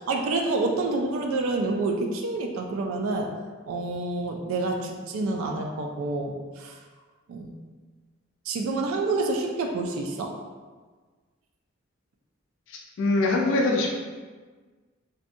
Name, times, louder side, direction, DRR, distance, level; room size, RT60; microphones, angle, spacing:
voice 1, 0.1-3.3 3.7-6.8 7.3-7.5 8.5-10.3, right 3 dB, 75° right, 3 dB, 0.3 m, -28 dB
voice 2, 12.7-13.9, left 2 dB, 65° left, -1 dB, 0.3 m, -23 dB
2.6 x 2.2 x 2.5 m, 1.4 s
head